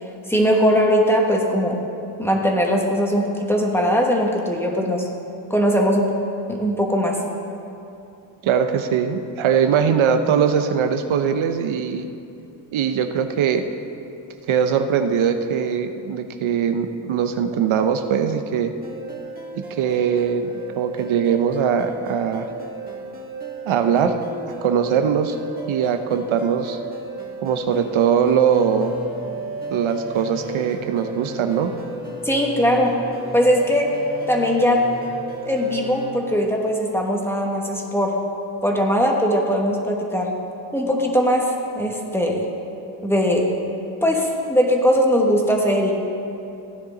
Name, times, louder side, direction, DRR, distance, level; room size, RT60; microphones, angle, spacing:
voice 1, 0.3-1.8 2.2-5.0 5.5-6.2 6.5-7.2 32.2-32.9 33.3-34.0 34.3-34.9 35.4-38.2 38.6-40.3 40.7-42.5 43.0-43.5 44.0-46.0, equal, 5° left, 0 dB, 1.3 m, -20 dB
voice 2, 8.4-12.1 12.7-13.6 14.5-18.7 19.6-22.5 23.7-24.2 24.6-25.4 25.7-26.8 27.4-28.9 29.7-31.7, right 7 dB, 85° right, 8 dB, 0.8 m, -21 dB
sound 1, 18.8-36.1, right 2 dB, 20° right, 2.0 m, -34 dB
16.0 x 9.9 x 3.9 m, 2.8 s
wide cardioid pair, 130°, 47 cm